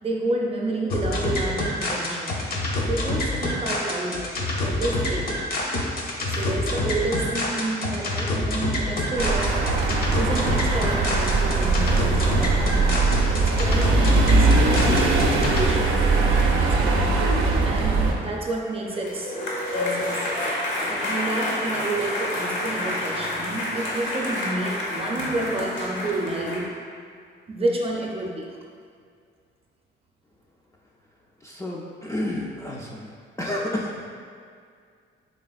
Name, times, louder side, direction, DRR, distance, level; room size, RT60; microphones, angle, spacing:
voice 1, 0.0-2.4 2.8-4.3 4.6-5.4 6.2-9.7 10.1-13.0 13.3-15.2 15.5-17.3 17.6-19.4 19.7-20.3 20.9-26.8 27.5-28.6, right 2 dB, 30° right, -1 dB, 0.6 m, -30 dB
sound 1, 0.9-15.7, left 1 dB, 50° left, 0.7 m, -27 dB
sound 2, 9.2-18.1, right 3 dB, 90° right, 0.5 m, -21 dB
sound 3, 18.8-26.6, left 1 dB, 75° left, 0.9 m, -29 dB
voice 2, 31.4-33.1 33.4-34.0, left 1 dB, 15° left, -3 dB, 0.3 m, -30 dB
4.2 x 3.3 x 2.3 m, 2.2 s
cardioid pair, 90°, 20 cm